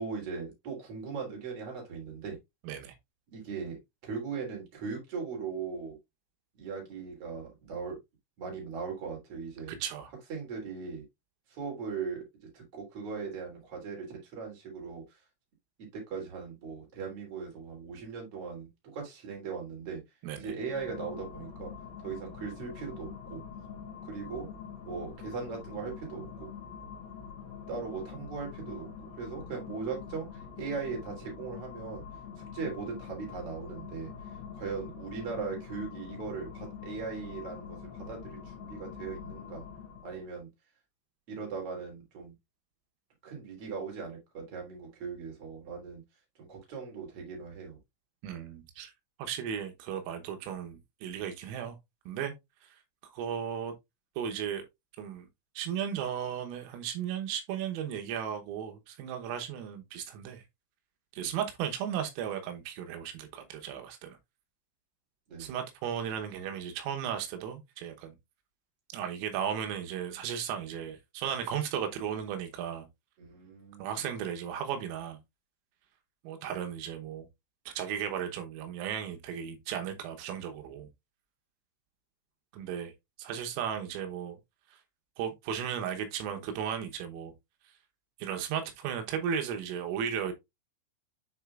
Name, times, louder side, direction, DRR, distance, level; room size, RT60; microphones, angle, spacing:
voice 1, 0.0-2.4 3.3-6.0 6.5-8.0 8.4-9.7 10.3-11.0 11.5-12.2 12.5-15.2 15.8-20.0 20.4-21.7 22.0-23.4 24.0-24.5 24.8-26.5 27.7-32.0 32.4-34.1 34.5-39.7 40.0-40.5 41.3-42.3 43.2-46.0 46.4-47.8 61.2-61.3 65.3-65.5 73.2-74.0, right 5 dB, 35° right, 3.2 m, -39 dB
voice 2, 2.7-3.0 9.7-10.1 20.2-20.5 48.2-48.9 49.2-51.8 52.1-52.3 52.6-52.8 53.0-53.7 54.2-54.6 55.0-55.3 55.6-60.4 61.1-64.2 65.4-68.2 68.9-72.9 73.8-75.2 76.3-77.3 77.7-80.9 82.5-82.9 83.2-84.4 84.7-84.8 85.2-87.3 88.2-90.3, right 8 dB, 85° right, 3.7 m, -35 dB
sound 1, 20.5-40.3, left 7 dB, 60° left, 3.3 m, -45 dB
9.9 x 4.2 x 2.4 m
omnidirectional pair, 5.9 m